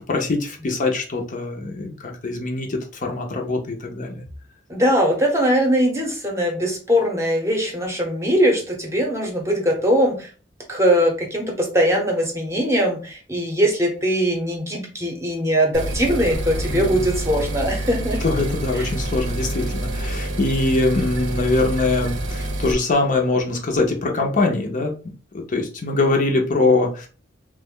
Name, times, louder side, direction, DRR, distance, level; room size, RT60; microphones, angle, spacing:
voice 1, 0.0-4.2 16.7-17.1 18.2-24.9 25.5-27.1, left 2 dB, 40° left, 1 dB, 0.6 m, -22 dB
voice 2, 4.7-10.3 10.7-18.2 18.8-18.9, equal, 15° right, 1 dB, 0.8 m, -21 dB
sound 1, 15.7-22.7, right 1 dB, 65° right, 0.7 m, -27 dB
3.1 x 2.1 x 3.6 m, 0.36 s
head